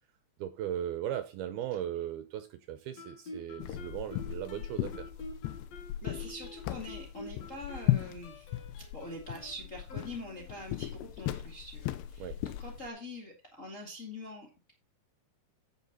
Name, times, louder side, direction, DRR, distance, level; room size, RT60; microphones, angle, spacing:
voice 1, 0.4-5.1 12.2-12.4, right 11 dB, 75° right, 10 dB, 2.4 m, -37 dB
Guitar, 3.0-10.7, left 2 dB, 55° left, 2.0 m, -48 dB
sound 1, 3.6-12.9, left 14 dB, 80° left, 2.7 m, -36 dB
voice 2, 6.0-8.5 8.7-14.7, left 1 dB, 25° left, -1 dB, 1.8 m, -44 dB
9.0 x 8.0 x 4.0 m, 0.29 s
omnidirectional pair, 5.0 m